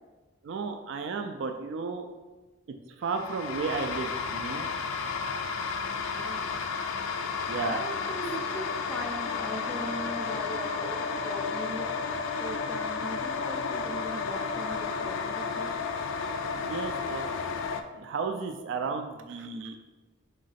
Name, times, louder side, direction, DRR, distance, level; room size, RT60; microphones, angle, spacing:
voice 1, 0.4-2.1 2.9-4.7 6.6-6.9 7.5-8.1 16.5-17.3 17.9-19.8, right 4 dB, 65° right, 6 dB, 0.3 m, -34 dB
sound 1, 3.1-17.8, left 5 dB, 80° left, 0.3 m, -32 dB
voice 2, 6.1-6.6 7.7-11.9 12.4-15.8, equal, 5° left, 0 dB, 0.5 m, -39 dB
3.8 x 3.1 x 4.0 m, 1.2 s
head